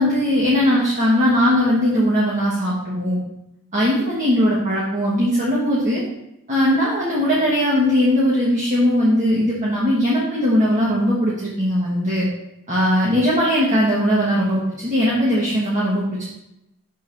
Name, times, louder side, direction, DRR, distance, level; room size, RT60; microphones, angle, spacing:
voice 1, 0.0-3.2 3.7-6.0 6.5-12.3 12.7-16.2, equal, 35° right, -6 dB, 1.3 m, -19 dB
6.6 x 3.7 x 5.6 m, 0.88 s
head